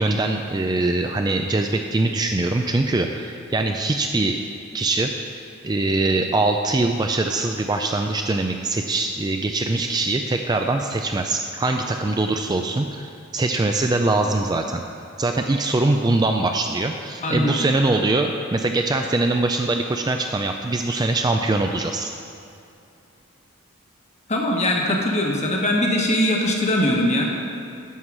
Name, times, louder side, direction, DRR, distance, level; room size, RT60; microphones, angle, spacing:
voice 1, 0.0-4.4 4.7-5.1 5.6-14.8 15.2-22.1, right 2 dB, 20° right, 4 dB, 0.3 m, -22 dB
voice 2, 17.2-17.6 24.3-27.4, left 1 dB, 30° left, 0 dB, 1.2 m, -21 dB
11.0 x 4.8 x 7.3 m, 2.5 s
head